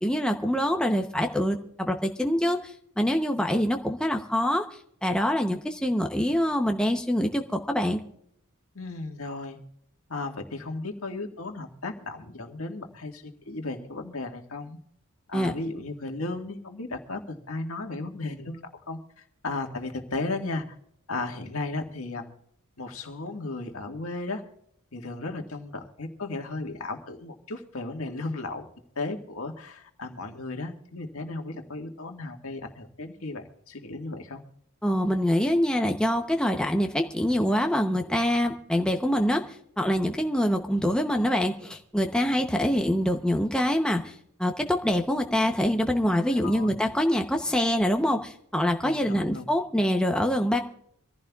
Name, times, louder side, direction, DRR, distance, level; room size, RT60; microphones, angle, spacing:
voice 1, 0.0-4.7 5.0-8.0 15.3-15.5 34.8-39.4 39.8-44.1 44.4-50.6, equal, 5° left, 3 dB, 0.8 m, -25 dB
voice 2, 8.8-9.6 10.1-14.8 15.3-20.8 21.1-22.3 22.8-24.4 24.9-28.7 29.0-34.4 46.3-46.8 48.8-49.4, left 2 dB, 70° left, 4 dB, 1.8 m, -35 dB
25.0 x 15.0 x 2.4 m, 0.69 s
head